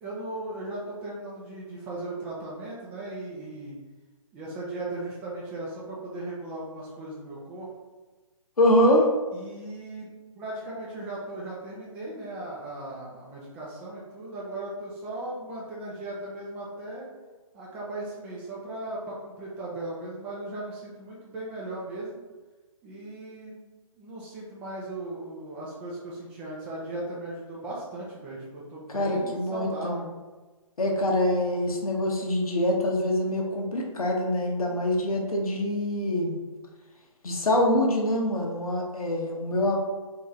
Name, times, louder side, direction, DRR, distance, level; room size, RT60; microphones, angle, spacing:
voice 1, 0.0-3.8 4.3-7.7 9.3-10.1 10.4-17.1 17.5-22.2 22.8-23.7 24.0-30.1, right 2 dB, 10° right, -5 dB, 0.3 m, -37 dB
voice 2, 8.6-9.1 28.9-30.0 30.8-36.4 37.2-39.8, left 1 dB, 85° left, 0 dB, 0.9 m, -24 dB
3.1 x 2.7 x 3.5 m, 1.2 s
hypercardioid pair, 145°, 18 cm